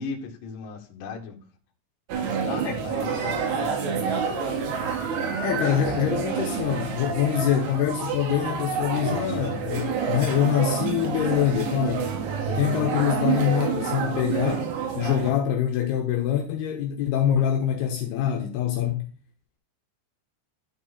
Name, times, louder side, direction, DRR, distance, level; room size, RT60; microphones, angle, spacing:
voice 1, 0.0-1.4 2.1-4.8, left 4 dB, 60° left, 2.6 m, -37 dB
sound 1, 2.1-15.3, right 6 dB, 75° right, 3.5 m, -28 dB
voice 2, 5.4-12.1 12.5-19.1, left 10 dB, 75° left, 2.8 m, -25 dB
12.5 x 4.6 x 4.1 m
omnidirectional pair, 5.0 m